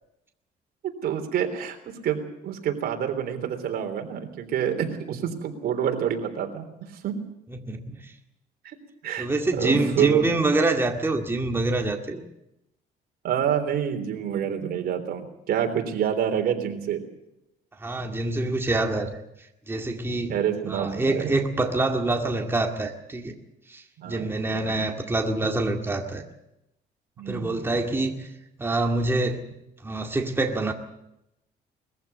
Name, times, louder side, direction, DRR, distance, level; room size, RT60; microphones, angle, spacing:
voice 1, 0.8-1.8 2.0-2.2 2.4-6.6 7.0-7.2 8.6-8.8 9.0-9.3 9.5-10.2 13.2-17.0 20.3-21.3 24.0-24.7 27.2-27.5, right 9 dB, 65° right, 5 dB, 3.6 m, -27 dB
voice 2, 7.5-8.1 9.2-12.2 17.8-19.2 19.7-20.4 20.7-23.4 23.7-26.2 27.3-28.3 28.6-29.4 29.8-30.7, right 2 dB, 15° right, 3 dB, 2.1 m, -26 dB
21.0 x 15.0 x 9.4 m, 0.86 s
cardioid pair, 110°, 17 cm